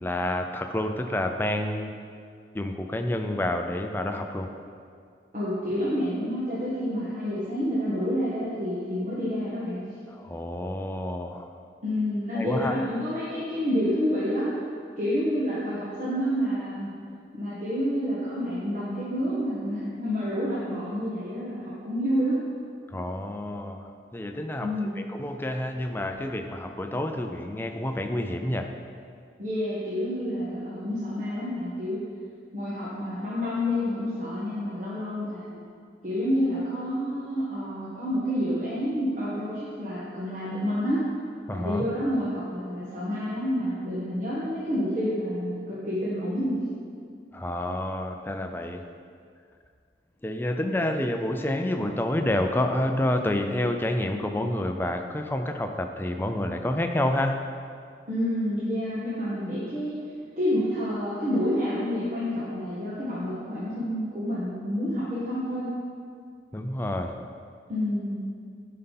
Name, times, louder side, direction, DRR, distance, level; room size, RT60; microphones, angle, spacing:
voice 1, 0.0-1.9 2.5-4.5 10.1-11.5 12.3-12.8 22.9-28.7 41.5-41.8 47.3-48.9 50.2-57.4 66.5-67.2, left 1 dB, 10° left, 5 dB, 0.5 m, -29 dB
voice 2, 5.3-9.8 11.8-14.5 15.0-16.9 17.3-22.4 24.6-25.0 29.4-32.0 32.5-35.6 36.0-41.0 41.5-46.6 58.1-60.0 60.4-65.7 67.7-68.2, equal, 45° right, -9 dB, 1.5 m, -28 dB
11.0 x 5.6 x 4.1 m, 2.2 s
head